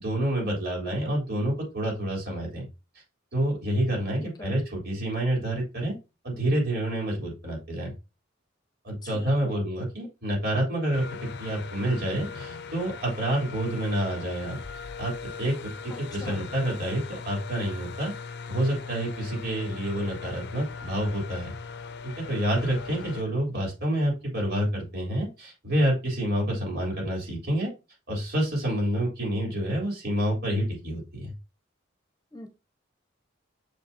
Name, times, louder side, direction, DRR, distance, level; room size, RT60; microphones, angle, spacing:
voice 1, 0.0-2.7 3.3-5.9 6.2-7.9 8.8-14.6 15.0-15.1 15.4-15.7 16.1-18.1 18.5-21.5 22.2-27.7 28.1-31.3, right 1 dB, 55° right, 3.8 m, -28 dB
voice 2, 4.2-4.5 9.0-9.6 15.9-16.4 32.3-32.5, left 2 dB, 20° left, 1.1 m, -43 dB
sound 1, 10.9-23.2, left 5 dB, 60° left, 0.6 m, -39 dB
6.9 x 5.5 x 2.8 m
head